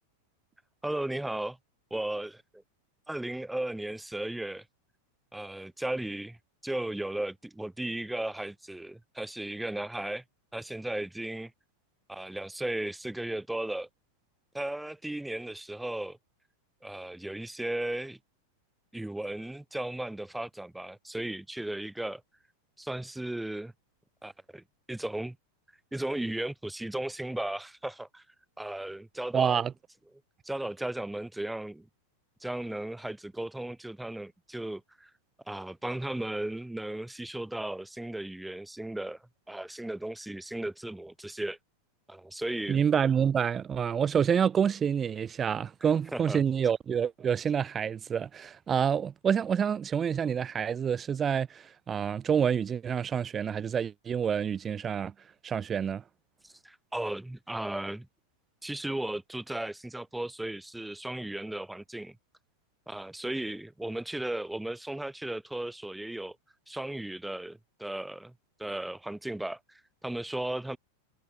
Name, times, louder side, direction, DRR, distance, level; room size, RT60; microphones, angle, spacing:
voice 1, 0.8-1.6 1.9-2.6 3.1-4.6 5.3-6.4 6.6-10.2 10.5-11.5 12.1-13.9 14.5-16.2 16.8-18.2 18.9-22.2 22.8-23.7 24.2-25.4 25.9-28.2 28.6-29.7 30.4-31.9 32.4-35.1 35.5-39.2 39.5-41.6 42.1-42.8 46.1-46.4 56.4-58.1 58.6-62.2 62.9-66.4 66.7-68.3 68.6-70.8, right 1 dB, 5° right, 1.5 m, -35 dB
voice 2, 29.3-29.7 42.7-55.1 55.4-56.0, right 7 dB, 25° right, 1.3 m, -28 dB
hypercardioid pair, 100°, 0 cm